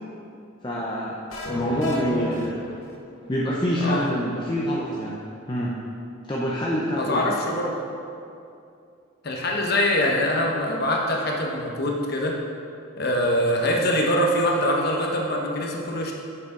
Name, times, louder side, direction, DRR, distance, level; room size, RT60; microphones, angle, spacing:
voice 1, 0.6-1.2 1.5-2.6 3.3-5.2 5.5-5.8 6.3-7.2, equal, 20° left, -5 dB, 0.7 m, -26 dB
sound 1, 1.3-3.3, equal, 85° left, 1.2 m, -32 dB
voice 2, 3.8-4.1 6.9-7.8 9.2-12.4 13.0-16.1, left 1 dB, 50° left, 0 dB, 1.1 m, -24 dB
9.7 x 6.7 x 3.9 m, 2.5 s
head